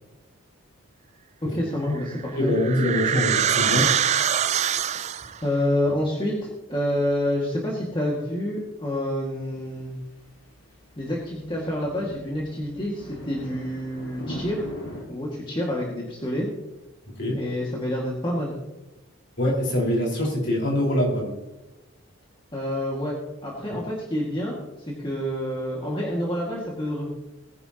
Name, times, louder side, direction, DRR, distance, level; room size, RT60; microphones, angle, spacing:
voice 1, 1.5-2.5 5.4-10.0 11.0-14.7 15.1-16.5 17.4-18.5 22.5-23.1 23.4-24.6 24.9-27.1, left 1 dB, 20° left, -3 dB, 2.0 m, -28 dB
sound 1, 2.0-5.4, right 9 dB, 30° right, 0.3 m, -24 dB
voice 2, 2.4-3.9 17.1-17.4 19.4-21.3, left 1 dB, 50° left, -3 dB, 4.7 m, -24 dB
sound 2, 9.5-15.0, equal, 70° left, 4.5 m, -40 dB
19.5 x 10.5 x 2.9 m, 1.0 s
head